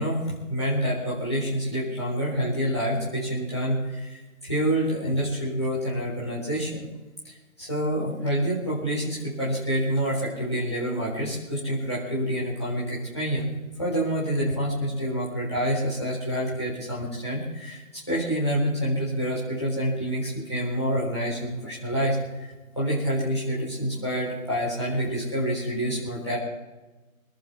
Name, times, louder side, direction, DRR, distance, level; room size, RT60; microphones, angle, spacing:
voice 1, 0.0-6.9 7.2-13.5 13.8-17.8 18.1-26.4, equal, 20° left, -7 dB, 3.9 m, -27 dB
24.0 x 13.5 x 3.5 m, 1.1 s
figure-of-eight pair, 175°, 43 cm